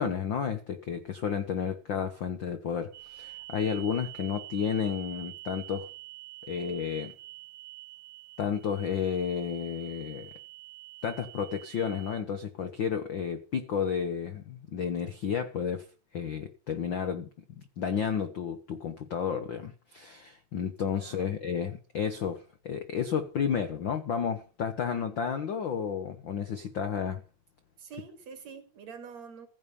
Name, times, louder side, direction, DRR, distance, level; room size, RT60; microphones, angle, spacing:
voice 1, 0.0-5.9 6.5-7.1 8.4-10.3 11.0-15.9 16.1-17.3 17.6-27.2, left 7 dB, 65° left, 1.2 m, -32 dB
sound 1, 2.9-12.2, right 18 dB, 90° right, 2.4 m, -46 dB
voice 2, 20.9-21.4 27.8-29.5, right 6 dB, 60° right, 3.4 m, -46 dB
15.5 x 7.5 x 6.9 m
omnidirectional pair, 3.7 m